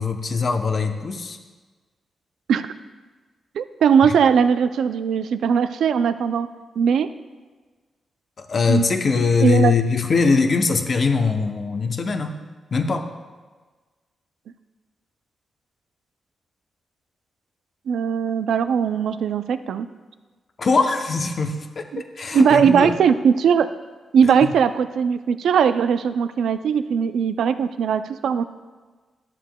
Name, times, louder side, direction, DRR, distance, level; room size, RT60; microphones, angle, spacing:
voice 1, 0.0-1.4 4.0-4.1 8.4-12.3 12.7-13.1 20.6-21.9 22.2-22.9 24.2-24.3, left 4 dB, 50° left, 5 dB, 0.7 m, -21 dB
voice 2, 3.6-6.5 6.8-7.1 8.7-8.9 9.4-9.7 17.9-19.9 21.9-22.0 22.3-23.7 24.1-28.4, right 7 dB, 85° right, 11 dB, 0.3 m, -19 dB
11.5 x 7.3 x 2.2 m, 1.4 s
cardioid pair, 80°, 0 cm